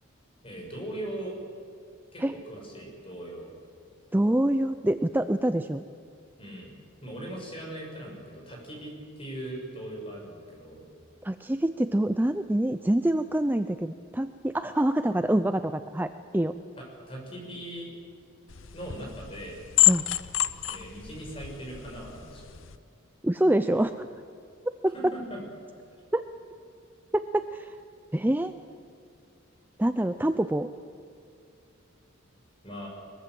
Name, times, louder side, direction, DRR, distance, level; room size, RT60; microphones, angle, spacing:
voice 1, 0.4-1.4 2.1-3.5 6.4-6.8 7.0-10.9 16.8-17.9 18.7-19.6 20.7-22.5 24.9-25.4 32.6-32.9, right 1 dB, 25° left, 0 dB, 6.3 m, -40 dB
voice 2, 4.1-5.8 11.2-16.6 19.9-20.0 23.2-24.1 24.8-25.1 26.1-26.2 27.1-27.7 28.1-28.5 29.8-30.7, right 1 dB, 10° right, 10 dB, 0.4 m, -26 dB
sound 1, 18.5-22.8, left 16 dB, 70° left, 0.8 m, -28 dB
22.0 x 22.0 x 7.8 m, 2.5 s
head